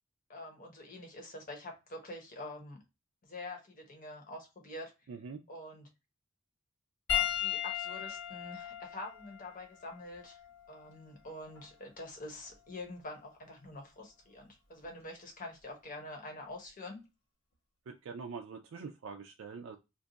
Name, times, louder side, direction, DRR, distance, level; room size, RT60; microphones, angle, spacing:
voice 1, 0.3-2.8 3.2-4.9 5.5-5.9 7.1-10.4 10.7-17.0, left 2 dB, 40° left, 3 dB, 1.0 m, -46 dB
voice 2, 5.1-5.4 17.9-19.8, right 5 dB, 70° right, 3 dB, 0.4 m, -44 dB
Piano, 7.1-11.8 12.7-12.9 14.8-14.9, left 12 dB, 85° left, 1.1 m, -37 dB
2.6 x 2.4 x 3.8 m, 0.26 s
head